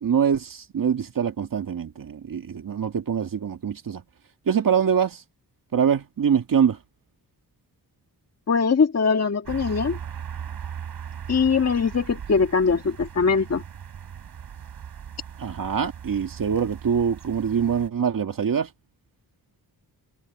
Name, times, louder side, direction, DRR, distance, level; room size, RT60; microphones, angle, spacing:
voice 1, 0.0-4.0 4.5-5.2 5.7-6.8 15.4-18.7, right 7 dB, 60° right, 1.9 m, -24 dB
voice 2, 8.5-10.0 11.3-13.6, left 5 dB, 45° left, 1.7 m, -21 dB
sound 1, 9.4-17.9, right 8 dB, 90° right, 3.3 m, -38 dB
wide cardioid pair, 105°, 37 cm